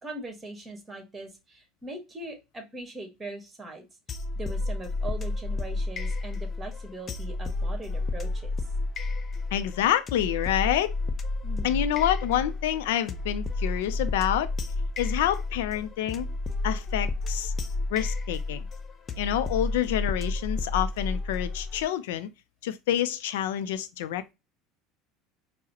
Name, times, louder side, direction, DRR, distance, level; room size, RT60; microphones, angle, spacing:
voice 1, 0.0-3.9 4.3-8.5 11.4-11.8, right 2 dB, 20° right, 1.5 m, -40 dB
sound 1, 4.1-21.8, left 2 dB, 35° left, 0.6 m, -31 dB
voice 2, 9.5-10.9 11.6-14.5 15.0-16.3 16.6-17.5 17.9-18.7 19.2-22.3 22.6-24.3, left 11 dB, 85° left, 0.4 m, -27 dB
4.7 x 2.1 x 2.8 m
supercardioid pair, 105°, 0 cm